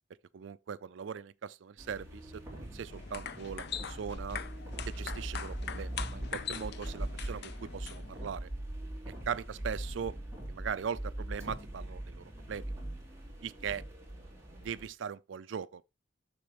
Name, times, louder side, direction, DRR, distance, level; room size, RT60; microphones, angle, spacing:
voice 1, 0.3-4.4 4.9-8.5 9.3-10.1 10.5-12.7 13.4-13.8 14.6-15.9, right 7 dB, 70° right, 0.4 m, -40 dB
sound 1, 1.8-14.9, right 1 dB, 15° right, 2.8 m, -41 dB
sound 2, 2.9-8.2, left 7 dB, 60° left, 0.6 m, -42 dB
6.9 x 6.7 x 3.0 m
head